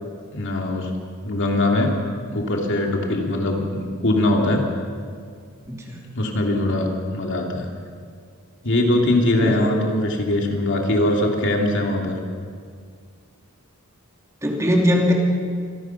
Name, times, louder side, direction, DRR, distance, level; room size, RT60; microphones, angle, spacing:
voice 1, 0.3-0.9 1.2-1.9 2.3-4.6 6.1-7.7 8.6-12.2, left 1 dB, 55° left, 1 dB, 2.9 m, -21 dB
voice 2, 5.6-6.0 9.4-9.7 14.4-15.1, equal, 15° right, -1 dB, 2.8 m, -20 dB
26.5 x 17.0 x 5.9 m, 2.1 s
head